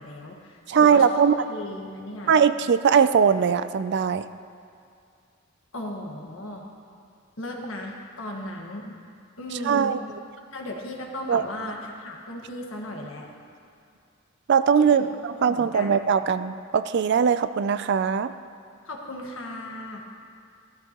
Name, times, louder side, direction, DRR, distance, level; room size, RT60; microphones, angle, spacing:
voice 1, 0.0-2.3 5.7-6.6 7.4-8.9 9.4-9.9 10.5-13.3 14.9-15.1 15.4-16.0 18.9-20.0, left 1 dB, 75° left, 0 dB, 1.6 m, -36 dB
voice 2, 0.7-1.3 2.3-4.3 9.6-10.0 11.3-11.4 14.5-15.1 15.4-18.3, right 7 dB, 55° right, 13 dB, 0.4 m, -20 dB
15.5 x 12.5 x 3.0 m, 2.4 s
head